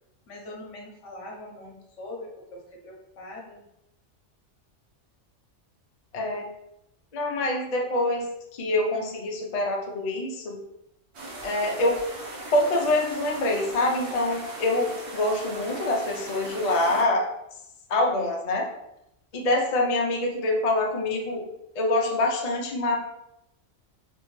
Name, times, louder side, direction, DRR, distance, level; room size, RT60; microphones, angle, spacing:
voice 1, 0.3-3.6, left 1 dB, 80° left, -1 dB, 1.2 m, -42 dB
voice 2, 6.1-6.5 7.1-10.6 11.4-12.0 12.5-17.3 17.9-18.7 19.3-21.5 21.7-23.0, left 2 dB, 45° left, 0 dB, 0.6 m, -25 dB
sound 1, 11.1-17.0, right 2 dB, 65° right, 1.1 m, -39 dB
3.2 x 3.1 x 3.1 m, 0.85 s
omnidirectional pair, 1.2 m